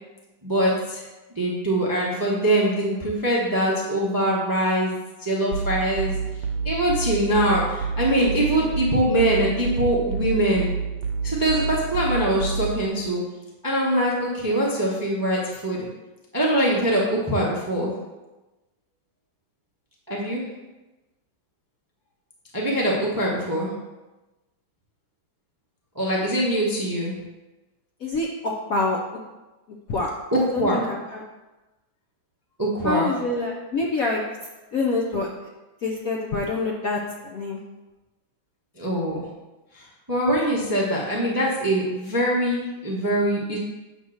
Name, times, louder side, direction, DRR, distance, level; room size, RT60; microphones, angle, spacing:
voice 1, 0.4-1.0 1.4-4.9 5.2-6.1 6.6-10.7 11.2-13.2 13.6-15.9 16.3-17.9 20.1-20.4 22.5-23.7 25.9-27.1 30.3-30.8 32.6-33.1 38.8-39.2 39.7-43.6, right 1 dB, 20° right, -4 dB, 0.6 m, -23 dB
sound 1, 5.5-12.9, right 5 dB, 70° right, 1.3 m, -28 dB
voice 2, 28.0-29.0 29.9-31.2 32.8-34.2 34.7-35.3 35.8-37.6, left 3 dB, 60° left, -1 dB, 0.9 m, -26 dB
8.1 x 3.0 x 6.3 m, 1.1 s
omnidirectional pair, 2.2 m